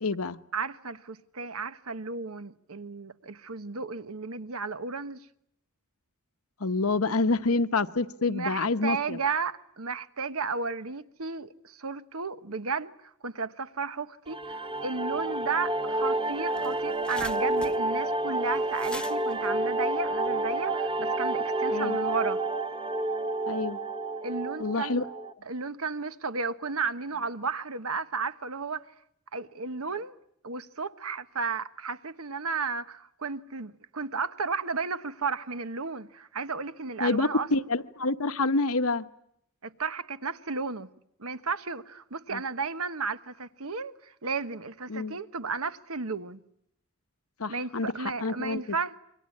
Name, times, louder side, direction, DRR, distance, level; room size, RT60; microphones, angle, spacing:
voice 1, 0.0-0.4 6.6-9.2 21.7-22.0 23.5-23.8 24.6-25.0 37.0-39.0 42.3-42.4 44.9-45.2 47.4-48.6, left 3 dB, 70° left, 1.2 m, -27 dB
voice 2, 0.5-5.3 8.2-22.4 24.2-25.0 25.4-28.8 29.3-30.2 30.4-37.5 39.6-40.9 41.2-46.4 47.5-49.0, right 4 dB, 70° right, 1.3 m, -33 dB
sound 1, 14.3-25.3, right 2 dB, 25° right, 1.0 m, -29 dB
sound 2, 16.0-16.1 16.3-20.6, left 1 dB, 5° left, 1.1 m, -44 dB
28.0 x 24.5 x 8.6 m
head